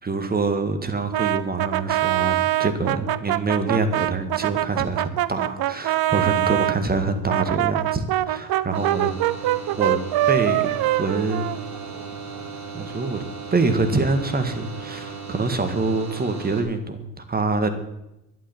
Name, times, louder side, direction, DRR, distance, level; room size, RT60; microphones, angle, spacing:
voice 1, 0.0-9.1 9.8-10.0 10.2-11.5 12.7-13.2 13.5-17.7, right 3 dB, 20° right, 8 dB, 1.8 m, -25 dB
Brass instrument, 1.1-6.8 7.3-12.1, right 15 dB, 50° right, 0.9 m, -24 dB
sound 1, 8.7-16.6, right 5 dB, 35° right, 4.0 m, -36 dB
11.5 x 11.5 x 7.1 m, 0.89 s
supercardioid pair, 105°, 48 cm